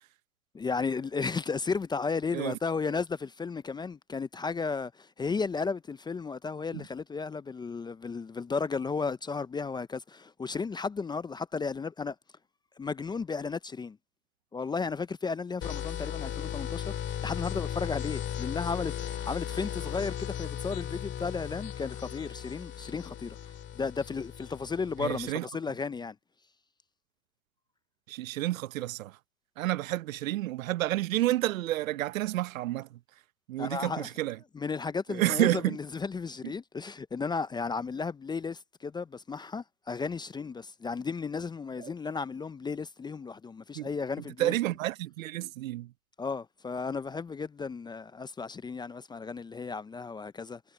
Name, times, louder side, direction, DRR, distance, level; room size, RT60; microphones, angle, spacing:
voice 1, 0.5-12.2 12.8-14.0 14.5-23.4 23.8-26.2 33.6-34.1 34.5-44.5 46.2-50.6, left 4 dB, 10° left, 0.6 m, -34 dB
sound 1, 15.6-25.3, left 10 dB, 30° left, 3.7 m, -36 dB
voice 2, 25.0-25.4 28.1-29.1 29.6-32.9 33.5-34.4 35.1-35.8 41.8-41.9 43.7-43.9 44.4-45.9, right 15 dB, 75° right, 1.0 m, -30 dB
hypercardioid pair, 115°, 41 cm